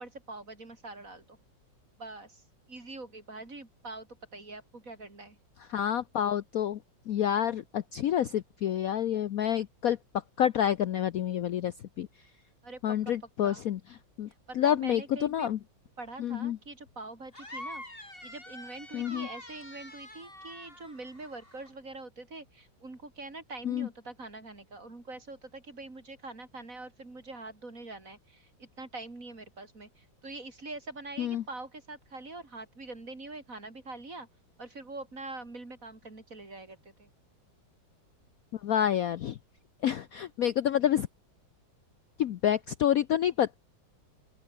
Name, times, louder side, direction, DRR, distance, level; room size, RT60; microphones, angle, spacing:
voice 1, 0.0-1.4 2.0-5.4 12.6-13.1 13.4-13.6 14.5-15.5 16.0-17.8 18.2-34.3 34.6-37.1, right 2 dB, 45° right, 4.9 m, -44 dB
voice 2, 5.7-6.8 7.1-10.0 10.4-12.1 12.8-13.8 14.2-14.3 14.5-15.6 16.2-16.6 18.9-19.3 23.6-23.9 31.2-31.4 38.5-39.4 39.8-41.1 42.2-43.5, left 10 dB, 60° left, 1.0 m, -28 dB
sound 1, 17.3-21.7, left 1 dB, 25° left, 8.1 m, -45 dB
open air
omnidirectional pair, 2.1 m